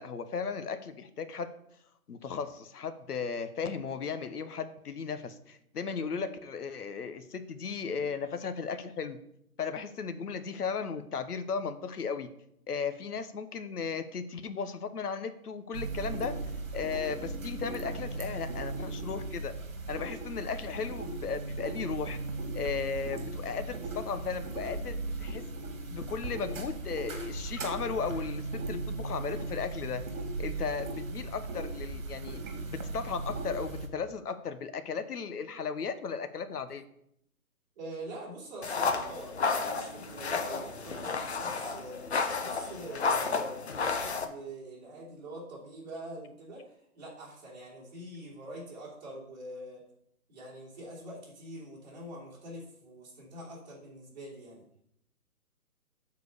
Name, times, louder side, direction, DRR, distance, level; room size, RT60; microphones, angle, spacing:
voice 1, 0.0-1.5 2.1-9.2 9.6-12.3 12.7-16.3 16.7-19.5 19.9-22.2 22.5-25.4 25.9-30.0 30.4-32.4 32.7-36.8, left 5 dB, 85° left, 10 dB, 1.1 m, -36 dB
sound 1, 15.7-33.9, right 2 dB, 60° right, 1.9 m, -37 dB
voice 2, 37.7-49.8 50.3-54.6, right 1 dB, 30° right, -5 dB, 3.0 m, -44 dB
sound 2, 38.6-44.2, left 4 dB, 45° left, 0.8 m, -32 dB
7.2 x 4.6 x 6.5 m, 0.74 s
hypercardioid pair, 175°, 44 cm